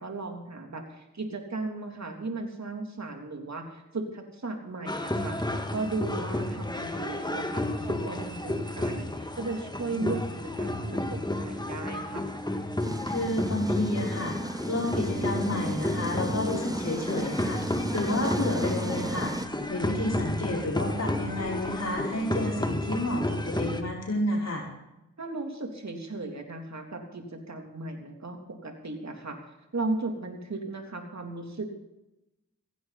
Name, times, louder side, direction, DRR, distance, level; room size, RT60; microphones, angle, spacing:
voice 1, 0.0-10.2 10.6-12.2 25.2-29.4 29.7-31.7, right 3 dB, 55° right, 3 dB, 3.3 m, -36 dB
sound 1, 4.9-23.8, left 1 dB, 15° left, 1.9 m, -32 dB
sound 2, 12.8-19.5, right 1 dB, 10° right, 1.1 m, -35 dB
voice 2, 13.1-14.3 14.7-19.3 19.7-24.6, left 1 dB, 50° left, -2 dB, 4.9 m, -30 dB
16.0 x 16.0 x 4.2 m, 0.92 s
cardioid pair, 40°, 33 cm